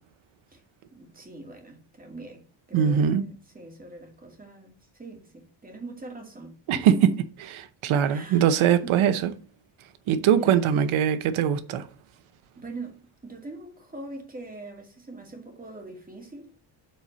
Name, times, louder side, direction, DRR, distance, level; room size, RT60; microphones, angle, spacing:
voice 1, 0.9-2.4 2.7-7.2 8.1-8.5 8.8-9.1 10.2-10.7 12.6-16.5, right 2 dB, 20° right, 2.2 m, -42 dB
voice 2, 2.7-3.2 6.7-6.8 7.8-9.3 10.1-11.9, right 8 dB, 90° right, 0.8 m, -22 dB
7.7 x 4.2 x 6.7 m
cardioid pair, 145°, 47 cm